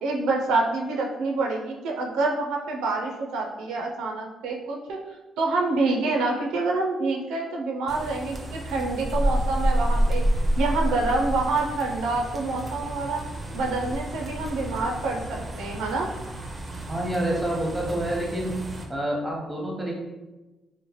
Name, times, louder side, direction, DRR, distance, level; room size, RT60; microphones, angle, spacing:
voice 1, 0.0-5.0 5.4-10.2 10.6-13.2 13.5-16.1, right 3 dB, 90° right, 0 dB, 0.4 m, -27 dB
sound 1, 7.9-18.8, right 1 dB, 30° right, 0.5 m, -29 dB
voice 2, 16.9-18.6 18.9-19.9, right 1 dB, 10° right, -1 dB, 0.8 m, -28 dB
2.9 x 2.1 x 3.0 m, 1.1 s
cardioid pair, 90°, 0 cm